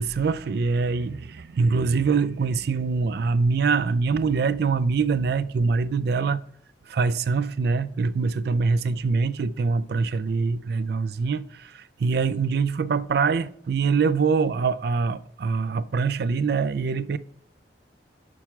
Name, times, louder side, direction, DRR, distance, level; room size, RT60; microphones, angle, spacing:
voice 1, 0.0-6.4 6.9-17.2, right 4 dB, 60° right, 0.4 m, -24 dB
6.1 x 5.8 x 4.5 m
head